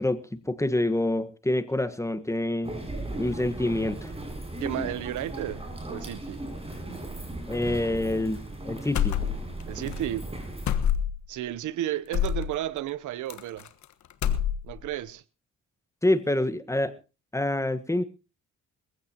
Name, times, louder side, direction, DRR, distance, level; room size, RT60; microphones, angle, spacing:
voice 1, 0.0-2.8 3.2-4.1 7.5-9.1 16.0-16.9 17.3-18.0, left 1 dB, 10° left, 1.3 m, -27 dB
sound 1, 2.6-10.7, right 1 dB, 20° right, 7.0 m, -37 dB
voice 2, 4.6-5.6 5.9-6.4 9.7-10.3 11.3-13.7 14.6-15.2, right 13 dB, 75° right, 0.9 m, -32 dB
sound 2, 8.9-9.6 9.9-10.0 10.7-11.3 12.1-12.5 13.3-13.8 14.1-14.9, left 9 dB, 70° left, 1.4 m, -26 dB
22.0 x 15.5 x 2.9 m
cardioid pair, 90°, 30 cm